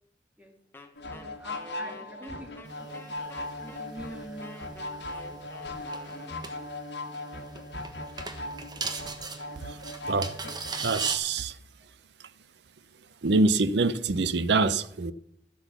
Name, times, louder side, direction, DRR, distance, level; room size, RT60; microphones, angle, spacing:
Wind instrument woodwind instrument, 0.7-6.8, left 2 dB, 15° left, 1.2 m, -49 dB
sound 1, 1.0-11.1, left 2 dB, 65° left, 1.7 m, -39 dB
voice 1, 1.1-2.6 3.6-5.0 6.1-6.2, equal, 10° right, 2.1 m, -45 dB
sound 2, 2.6-11.2, right 4 dB, 25° right, 1.1 m, -40 dB
voice 2, 10.8-11.6 13.2-15.1, right 3 dB, 65° right, 0.6 m, -25 dB
12.5 x 8.1 x 7.0 m
head